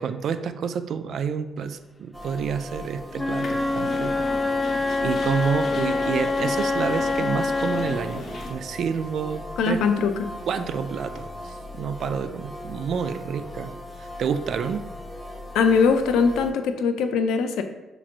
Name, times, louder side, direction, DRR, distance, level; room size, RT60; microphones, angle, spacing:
voice 1, 0.0-4.3 4.6-8.2 8.5-9.8 10.4-13.7 14.0-14.8, right 6 dB, 65° right, 9 dB, 0.3 m, -29 dB
sound 1, 2.1-16.5, left 1 dB, 5° right, 0.8 m, -38 dB
Wind instrument woodwind instrument, 3.1-8.1, left 3 dB, 15° left, 0.3 m, -25 dB
sound 2, 3.4-8.5, left 1 dB, 55° left, 0.7 m, -37 dB
voice 2, 9.6-10.1 15.5-17.6, left 5 dB, 85° left, 7 dB, 0.4 m, -21 dB
6.0 x 3.0 x 2.5 m, 1.0 s
cardioid pair, 90°, 0 cm